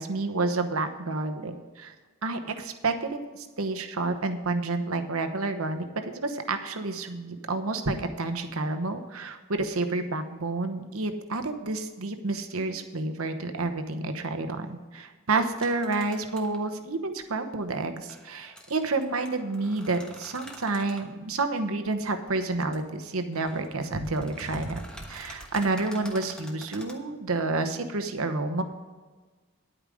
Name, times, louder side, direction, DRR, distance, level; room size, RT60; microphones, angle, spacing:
voice 1, 0.0-1.9 2.2-5.8 6.1-28.6, right 3 dB, 80° right, 7 dB, 1.0 m, -29 dB
sound 1, 15.6-16.6 18.1-21.1 22.7-22.8 23.2-27.0, equal, 5° left, 1.1 m, -48 dB
10.0 x 8.8 x 5.0 m, 1.3 s
head